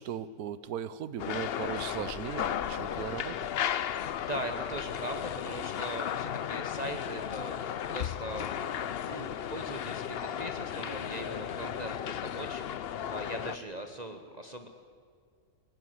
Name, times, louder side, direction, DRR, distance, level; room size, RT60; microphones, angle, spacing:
voice 1, 0.0-3.5, right 9 dB, 85° right, 16 dB, 1.3 m, -38 dB
sound 1, 1.2-13.6, left 9 dB, 55° left, 0.7 m, -35 dB
voice 2, 4.1-7.5 7.9-14.7, right 1 dB, 30° right, 5 dB, 1.2 m, -40 dB
20.5 x 18.5 x 7.9 m, 2.1 s
omnidirectional pair, 1.5 m